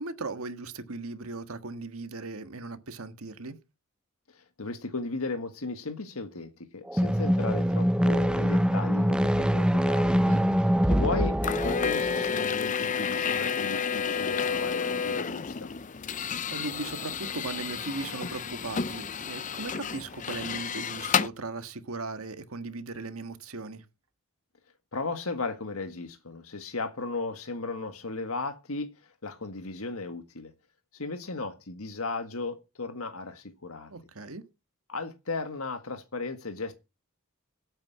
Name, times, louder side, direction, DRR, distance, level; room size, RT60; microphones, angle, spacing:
voice 1, 0.0-3.6 10.1-10.4 16.5-23.8 33.9-34.4, right 3 dB, 75° right, 1.6 m, -38 dB
voice 2, 4.3-10.3 10.9-15.7 24.9-28.9 29.2-30.5 30.9-33.9 34.9-36.7, left 3 dB, 75° left, 1.7 m, -35 dB
sound 1, 6.9-12.5, equal, 5° right, 0.6 m, -24 dB
sound 2, 11.4-21.3, left 6 dB, 35° left, 0.6 m, -31 dB
9.5 x 8.8 x 8.5 m
head